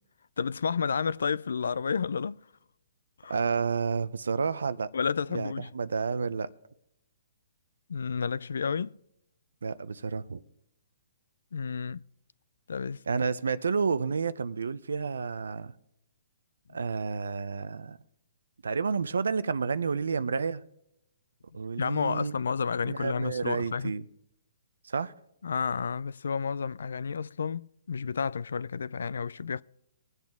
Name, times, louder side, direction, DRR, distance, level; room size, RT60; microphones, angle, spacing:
voice 1, 0.4-2.4 3.2-3.4 4.9-5.7 7.9-9.0 11.5-12.0 12.7-13.0 21.8-23.9 25.4-29.6, left 6 dB, 80° left, 0.3 m, -31 dB
voice 2, 3.3-4.9 5.3-6.5 9.6-10.4 13.1-15.7 16.7-18.0 18.6-20.6 21.5-22.3 22.8-24.0 24.8-25.1, right 5 dB, 85° right, 0.6 m, -30 dB
21.0 x 8.1 x 3.6 m
hypercardioid pair, 145°, 0 cm